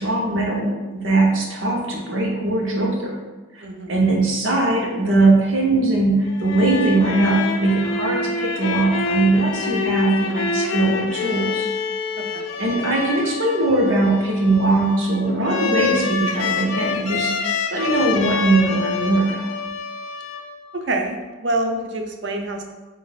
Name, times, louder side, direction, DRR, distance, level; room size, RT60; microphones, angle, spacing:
voice 1, 0.0-3.2 3.9-11.7 12.6-19.5, right 2 dB, 75° right, -1 dB, 0.9 m, -20 dB
voice 2, 3.6-3.9 12.2-12.5 20.7-22.6, right 2 dB, 60° right, 4 dB, 0.5 m, -26 dB
sound 1, 6.2-20.9, left 4 dB, 80° left, 0.4 m, -26 dB
4.2 x 2.5 x 4.0 m, 1.2 s
head